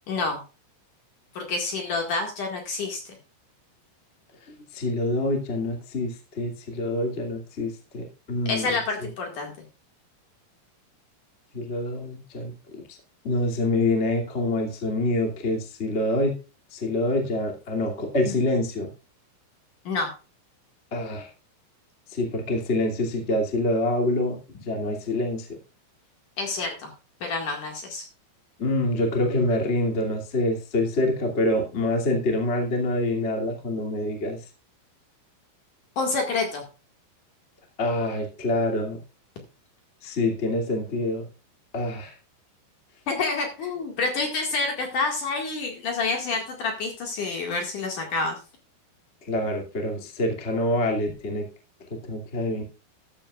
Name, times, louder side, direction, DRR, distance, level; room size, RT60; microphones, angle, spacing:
voice 1, 0.1-0.4 1.3-3.1 8.5-9.5 18.2-18.3 19.8-20.1 26.4-26.9 27.2-28.0 36.0-36.6 43.1-48.4, left 3 dB, 55° left, 2 dB, 2.6 m, -28 dB
voice 2, 4.5-8.7 11.5-12.8 13.2-16.3 16.7-18.9 20.9-21.3 22.1-24.4 24.6-25.6 28.6-34.4 37.8-39.0 40.0-41.3 41.7-42.1 49.3-51.5 52.1-52.6, left 1 dB, 30° left, 1 dB, 1.1 m, -26 dB
13.5 x 12.0 x 2.4 m, 0.32 s
omnidirectional pair, 5.9 m